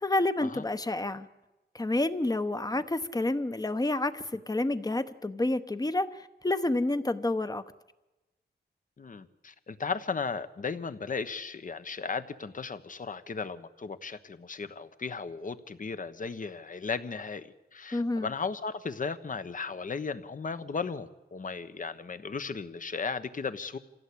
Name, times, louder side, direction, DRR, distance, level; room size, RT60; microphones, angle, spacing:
voice 1, 0.0-1.3 1.7-7.6 17.9-18.3, left 2 dB, 20° left, 12 dB, 1.0 m, -29 dB
voice 2, 9.0-23.8, left 5 dB, 45° left, 12 dB, 1.2 m, -36 dB
26.0 x 16.5 x 8.6 m, 1.0 s
wide cardioid pair, 120°, 18 cm